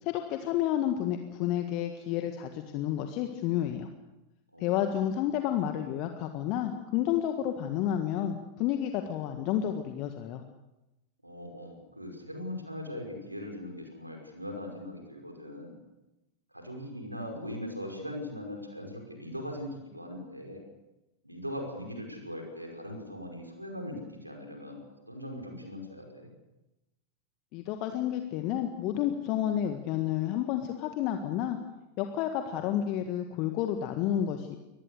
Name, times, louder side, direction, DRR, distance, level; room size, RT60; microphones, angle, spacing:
voice 1, 0.0-3.9 4.6-10.4 27.5-31.6 32.0-34.6, left 11 dB, 40° left, 6 dB, 1.7 m, -30 dB
voice 2, 4.5-4.8 11.2-15.8 16.5-20.6 21.2-24.8 25.1-26.3, left 1 dB, 85° right, 2 dB, 5.4 m, -40 dB
24.0 x 20.0 x 6.7 m, 0.98 s
figure-of-eight pair, 90°, 0 cm